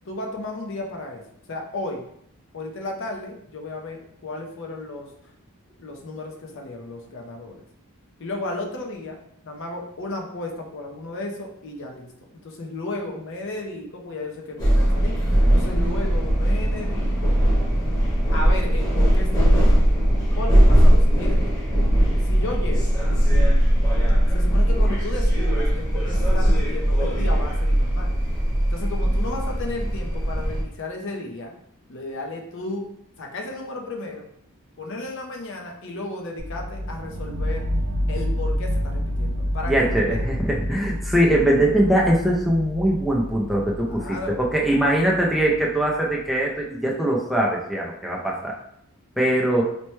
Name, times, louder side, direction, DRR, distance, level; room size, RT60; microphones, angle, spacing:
voice 1, 0.1-2.1 2.5-5.1 5.8-7.6 8.2-9.2 9.4-12.1 12.4-15.2 15.5-17.3 18.3-19.9 20.4-21.5 22.2-22.9 24.3-28.2 28.7-31.5 31.9-32.9 33.2-34.3 34.8-37.7 38.1-40.2 43.9-44.4, left 2 dB, 60° left, 1 dB, 0.6 m, -34 dB
sound 1, 14.6-30.6, equal, 20° left, 1.0 m, -19 dB
sound 2, 36.4-46.2, equal, 65° right, 0.5 m, -29 dB
voice 2, 39.7-48.5 49.2-49.6, right 1 dB, ahead, -3 dB, 0.4 m, -21 dB
4.3 x 2.1 x 3.1 m, 0.73 s
head